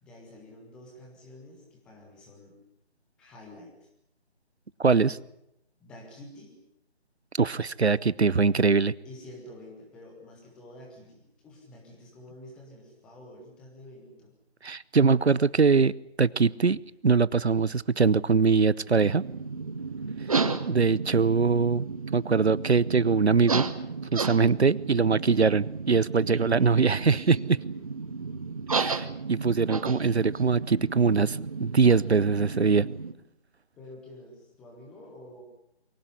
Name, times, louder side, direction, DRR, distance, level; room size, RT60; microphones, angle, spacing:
voice 1, 0.0-2.6 3.2-3.9 5.8-6.6 9.0-14.4 33.8-35.4, left 1 dB, 5° left, 0 dB, 1.1 m, -48 dB
voice 2, 4.8-5.2 7.4-8.9 14.6-15.9 16.2-19.2 20.7-21.8 22.1-23.6 24.1-27.6 28.7-32.9, right 5 dB, 70° right, 21 dB, 0.8 m, -22 dB
sound 1, 18.9-33.1, right 4 dB, 30° right, 1.1 m, -33 dB
23.5 x 16.5 x 9.7 m, 0.81 s
figure-of-eight pair, 155°, 33 cm